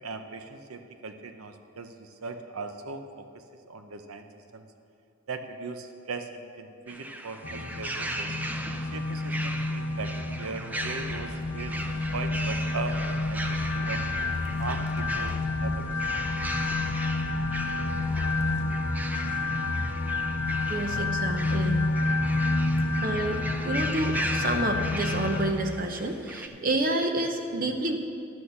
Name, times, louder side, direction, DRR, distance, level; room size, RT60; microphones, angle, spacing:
voice 1, 0.0-4.3 4.5-4.7 5.3-8.3 8.9-11.8 12.1-14.0 14.6-15.9, right 4 dB, 90° right, 7 dB, 0.7 m, -39 dB
sound 1, 6.9-26.5, right 1 dB, 10° right, 0.4 m, -38 dB
sound 2, 7.4-25.5, left 2 dB, 70° left, 0.7 m, -29 dB
sound 3, 11.0-18.6, left 1 dB, 50° left, 1.0 m, -44 dB
voice 2, 20.7-21.9 23.0-28.0, right 1 dB, 40° right, 5 dB, 0.7 m, -29 dB
11.0 x 6.4 x 6.9 m, 2.4 s
head